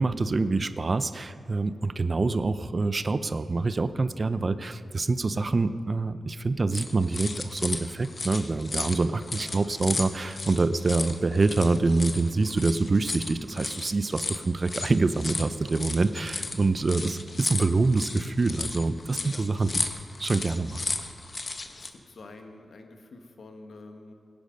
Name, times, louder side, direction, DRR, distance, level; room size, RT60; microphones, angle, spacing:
voice 1, 0.0-19.8 20.2-20.9, right 3 dB, 45° right, 13 dB, 0.5 m, -26 dB
sound 1, 6.7-21.9, left 3 dB, 45° left, 1.0 m, -35 dB
voice 2, 9.3-9.9 19.1-19.6 21.7-24.1, left 3 dB, 70° left, 5 dB, 1.5 m, -48 dB
17.5 x 10.5 x 5.4 m, 2.5 s
cardioid pair, 70°, 0 cm